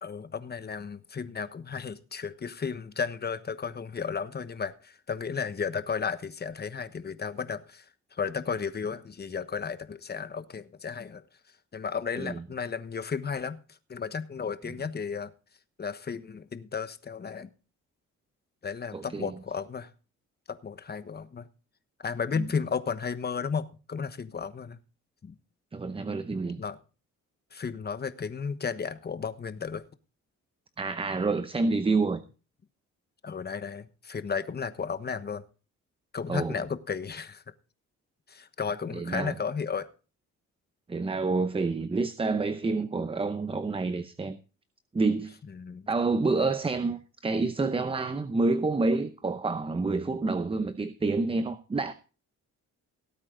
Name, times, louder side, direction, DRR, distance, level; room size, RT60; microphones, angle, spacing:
voice 1, 0.0-7.8 8.1-11.2 11.7-15.3 15.8-17.5 18.6-19.9 20.5-21.5 22.0-24.8 25.2-25.3 26.6-26.8 27.5-29.8 33.2-35.4 36.1-37.4 38.3-39.9 45.5-45.9, left 6 dB, 35° left, 1.2 m, -34 dB
voice 2, 18.9-19.3 22.4-22.5 25.7-26.6 30.8-32.2 36.3-36.6 38.9-39.3 40.9-44.4 44.9-45.4 45.9-51.9, right 3 dB, 20° right, 0.7 m, -28 dB
17.5 x 8.7 x 3.9 m
cardioid pair, 90°, 30 cm